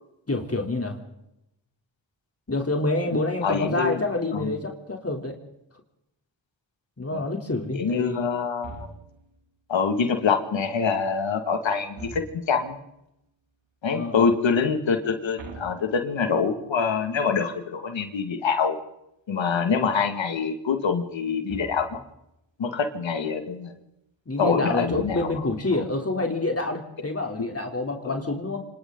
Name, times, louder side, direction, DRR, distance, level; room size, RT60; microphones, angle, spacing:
voice 1, 0.3-1.0 2.5-5.4 7.0-8.3 13.9-14.3 24.3-28.7, left 2 dB, 30° left, 2 dB, 3.5 m, -27 dB
voice 2, 3.4-4.0 4.3-4.5 7.1-7.2 7.7-8.9 9.7-12.8 13.8-18.8 19.3-22.0 22.6-23.7 24.4-25.3 28.0-28.2, left 5 dB, 80° left, 6 dB, 2.3 m, -25 dB
sound 1, 8.6-9.4 11.9-12.8 15.4-16.5 21.5-22.2 24.9-25.7, right 3 dB, 75° right, 2.9 m, -43 dB
27.5 x 25.5 x 4.0 m, 0.85 s
cardioid pair, 40°, 45 cm